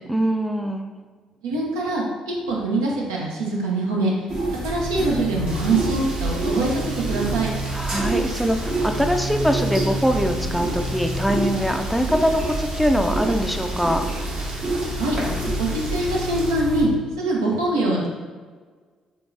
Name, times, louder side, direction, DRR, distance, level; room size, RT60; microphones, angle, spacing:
voice 1, 0.1-0.9 7.7-14.1, equal, ahead, 5 dB, 0.3 m, -23 dB
voice 2, 1.4-4.1 4.6-7.5 14.9-15.2 15.6-16.9 17.2-18.1, right 2 dB, 85° right, -3 dB, 0.6 m, -23 dB
sound 1, 4.3-16.8, right 1 dB, 65° right, 1.2 m, -27 dB
Rain, 5.5-16.5, right 1 dB, 45° right, 0.8 m, -38 dB
3.6 x 3.1 x 2.5 m, 1.5 s
hypercardioid pair, 45°, 2 cm